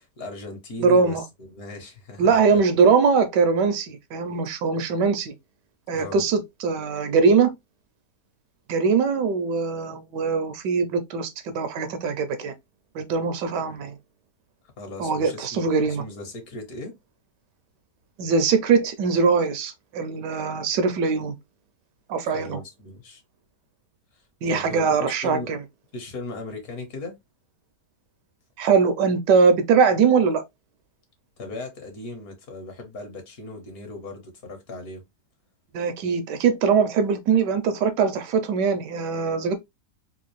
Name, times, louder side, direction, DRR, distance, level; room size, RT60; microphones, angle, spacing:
voice 1, 0.0-2.6 5.9-6.2 14.8-17.0 22.2-23.2 24.5-25.5 25.9-27.2 31.4-35.0, left 2 dB, 65° left, 1.6 m, -38 dB
voice 2, 0.8-1.2 2.2-5.3 5.9-7.5 8.7-12.5 12.9-14.0 15.0-16.0 18.2-21.3 22.1-22.6 24.4-25.6 28.6-30.4 35.7-39.5, right 5 dB, 90° right, 1.3 m, -21 dB
4.0 x 2.5 x 3.1 m
omnidirectional pair, 1.8 m